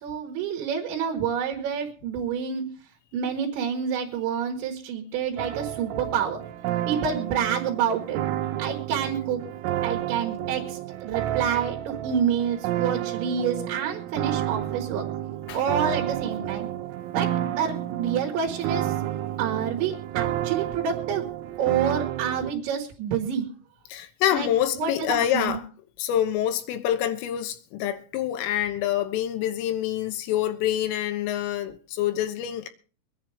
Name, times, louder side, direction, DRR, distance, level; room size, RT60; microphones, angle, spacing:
voice 1, 0.0-2.6 3.1-6.4 6.9-8.2 8.6-9.4 9.8-15.1 15.5-16.7 17.1-18.9 19.4-21.3 21.6-23.5 24.3-24.5 24.8-25.6, right 7 dB, 70° right, 3.9 m, -28 dB
sound 1, 5.4-22.5, right 12 dB, 90° right, 3.7 m, -30 dB
voice 2, 23.9-25.7 26.0-32.7, left 11 dB, 80° left, 3.6 m, -26 dB
23.5 x 10.5 x 3.5 m
omnidirectional pair, 5.8 m